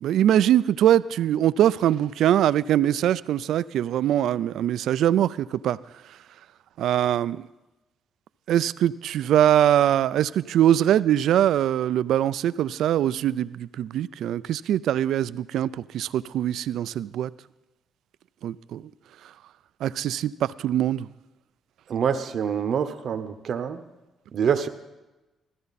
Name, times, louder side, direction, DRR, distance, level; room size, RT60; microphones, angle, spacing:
voice 1, 0.0-5.8 6.8-7.5 8.5-17.3 18.4-18.9 19.8-21.1, right 11 dB, 75° right, 0.3 m, -22 dB
voice 2, 21.9-23.8 24.3-24.7, right 7 dB, 60° right, 0.9 m, -26 dB
15.5 x 14.0 x 4.1 m
cardioid pair, 90°, 0 cm